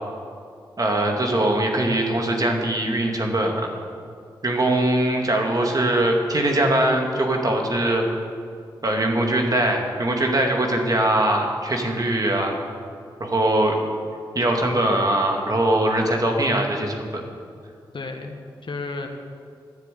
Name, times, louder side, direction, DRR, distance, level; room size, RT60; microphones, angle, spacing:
voice 1, 0.8-3.7 4.4-8.0 8.8-12.6 13.2-13.8 14.3-17.2, right 1 dB, 45° right, 1 dB, 2.4 m, -21 dB
voice 2, 17.9-19.1, left 3 dB, 65° left, 4 dB, 1.5 m, -33 dB
12.5 x 7.1 x 9.3 m, 2.3 s
cardioid pair, 45°, 9 cm